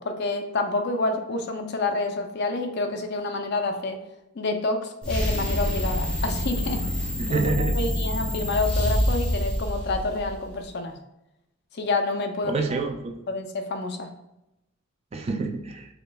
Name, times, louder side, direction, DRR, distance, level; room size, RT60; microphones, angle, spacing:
voice 1, 0.0-4.0 4.4-6.9 7.3-11.0 11.7-12.6 13.3-14.1, left 3 dB, 50° left, 6 dB, 0.5 m, -28 dB
sound 1, 5.0-10.4, equal, 5° left, 1.0 m, -26 dB
voice 2, 7.2-7.8 12.5-13.2 15.1-15.9, right 3 dB, 30° right, 4 dB, 0.3 m, -27 dB
5.0 x 3.3 x 2.2 m, 0.90 s
head